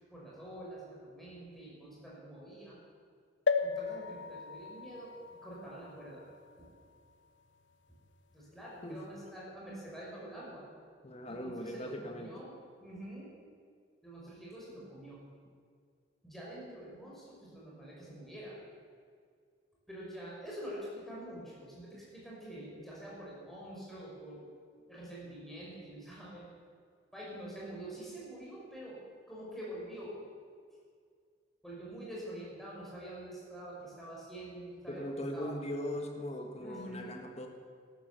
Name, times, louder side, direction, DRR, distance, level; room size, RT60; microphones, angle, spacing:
voice 1, 0.1-2.8 3.6-5.1 5.4-6.2 6.6-6.7 8.3-10.7 11.3-13.3 14.0-15.2 16.2-18.6 19.9-24.4 24.7-26.5 27.1-29.0 29.3-30.2 31.6-35.0 35.3-35.6 36.6-37.2, right 1 dB, ahead, -6 dB, 5.4 m, -46 dB
sound 1, 3.5-7.1 7.7-7.8 8.0-8.1, left 5 dB, 80° left, 0.9 m, -36 dB
voice 2, 11.0-12.3 34.9-37.5, equal, 35° left, 3 dB, 1.6 m, -39 dB
14.0 x 12.5 x 6.9 m, 2.1 s
head